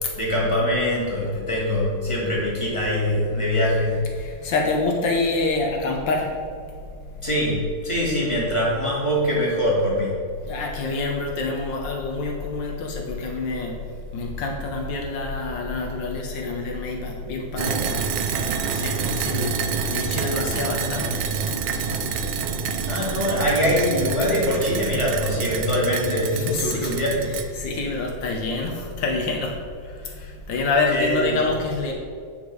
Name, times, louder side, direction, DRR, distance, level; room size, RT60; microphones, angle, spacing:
voice 1, 0.2-4.0 4.4-4.6 7.2-10.1 22.9-27.3 30.9-31.5, equal, 15° left, -6 dB, 2.2 m, -23 dB
voice 2, 4.1-6.3 10.5-13.8 14.1-19.5 19.9-21.2 26.3-26.9 27.3-29.5 29.8-31.9, left 3 dB, 80° left, 0 dB, 1.7 m, -27 dB
sound 1, 17.6-27.4, right 6 dB, 80° right, 1.4 m, -27 dB
8.9 x 5.8 x 4.8 m, 2.2 s
omnidirectional pair, 2.0 m